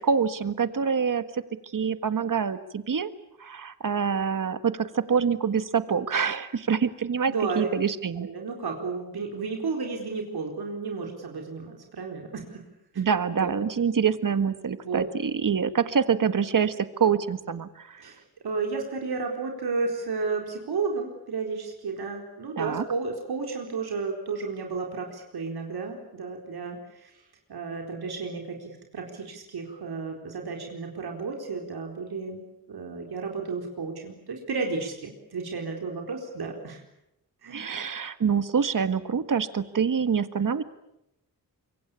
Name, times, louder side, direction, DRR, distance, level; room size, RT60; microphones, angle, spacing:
voice 1, 0.1-1.4 1.7-3.1 3.4-8.3 13.0-18.0 22.6-22.8 37.5-40.6, right 6 dB, 55° right, 12 dB, 1.7 m, -26 dB
voice 2, 7.3-7.7 8.2-12.6 13.4-13.5 14.8-15.0 18.0-27.1 27.5-36.8 37.4-37.7, right 4 dB, 85° right, 2 dB, 4.4 m, -32 dB
26.0 x 23.5 x 8.6 m, 0.83 s
wide cardioid pair, 85°, 37 cm